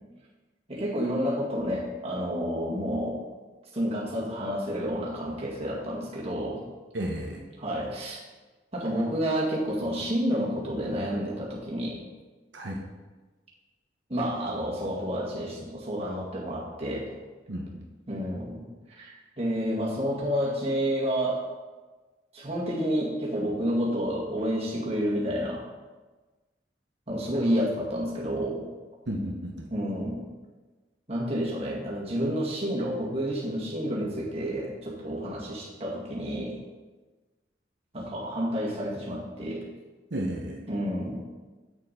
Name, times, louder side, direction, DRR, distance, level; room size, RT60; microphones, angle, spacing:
voice 1, 0.7-3.2 3.7-6.6 7.6-8.2 8.7-12.0 14.1-17.1 18.1-21.4 22.3-25.6 27.1-28.6 29.7-30.2 31.1-36.6 37.9-39.6 40.7-41.3, equal, 35° right, -5 dB, 2.0 m, -30 dB
voice 2, 6.9-7.4 12.5-12.8 17.5-17.8 29.1-29.7 40.1-40.6, right 1 dB, 85° right, -1 dB, 1.0 m, -33 dB
8.4 x 6.7 x 4.2 m, 1.3 s
head